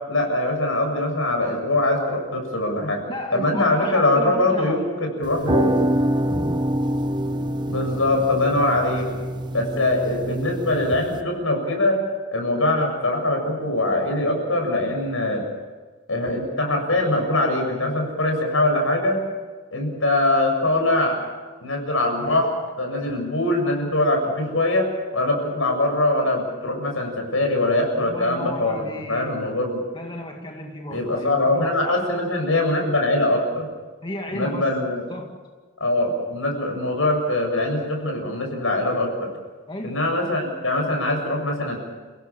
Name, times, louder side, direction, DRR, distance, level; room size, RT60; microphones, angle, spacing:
voice 1, 0.1-3.0 3.3-5.7 7.7-9.1 9.5-12.0 12.3-15.5 16.1-19.2 19.7-21.2 21.6-29.8 30.9-33.7 34.3-35.0 35.8-39.3 39.8-41.8, left 2 dB, 80° left, 3 dB, 7.3 m, -22 dB
voice 2, 3.0-4.9 28.0-29.4 29.9-32.0 34.0-34.7 35.1-35.4 39.7-40.0, left 1 dB, 25° left, 1 dB, 2.1 m, -34 dB
sound 1, 5.2-11.2, right 1 dB, 20° right, 1.1 m, -25 dB
29.5 x 17.0 x 7.4 m, 1.4 s
head